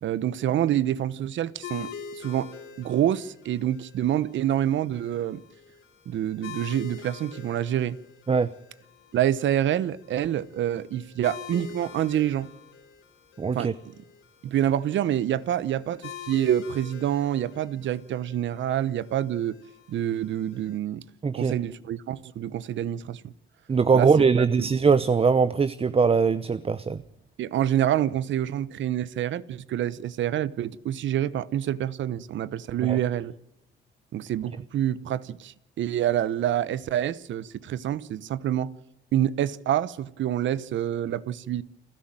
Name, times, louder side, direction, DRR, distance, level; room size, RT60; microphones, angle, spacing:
voice 1, 0.0-2.5 2.8-5.4 6.1-8.0 9.1-12.5 13.5-13.7 14.4-19.6 19.9-21.0 21.3-23.3 23.9-24.1 24.6-24.7 27.4-33.3 34.1-38.7 39.1-41.6, right 11 dB, 70° right, 1.0 m, -27 dB
sound 1, 1.6-20.8, left 7 dB, 80° left, 4.6 m, -46 dB
voice 2, 13.4-13.7 21.2-21.5 23.7-27.0 32.8-33.0, right 5 dB, 30° right, 0.9 m, -21 dB
29.0 x 12.0 x 9.0 m
cardioid pair, 90°, 20 cm